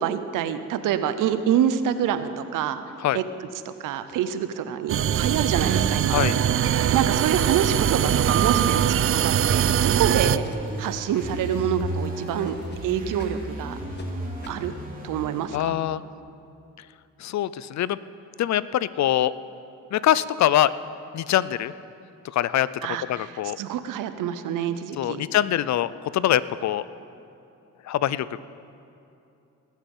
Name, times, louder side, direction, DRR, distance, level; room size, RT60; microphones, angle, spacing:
voice 1, 0.0-2.8 3.1-6.2 6.7-10.4 10.8-12.6 12.8-13.8 14.5-14.7 15.0-15.7 22.8-25.2, right 9 dB, 85° right, 11 dB, 0.7 m, -27 dB
sound 1, 4.9-10.4, right 9 dB, 45° right, 0.4 m, -22 dB
sound 2, 9.3-13.4 13.9-14.1 14.4-14.7, left 3 dB, 35° left, 1.5 m, -50 dB
sound 3, 10.1-15.5, equal, 25° right, 2.7 m, -34 dB
voice 2, 15.5-16.0 17.2-18.0 18.4-19.3 19.9-20.7 21.1-21.7 22.3-22.7 23.1-23.6 25.0-26.9 27.8-28.4, left 12 dB, 60° left, 17 dB, 0.5 m, -23 dB
19.5 x 7.4 x 5.5 m, 2.7 s
cardioid pair, 70°, 31 cm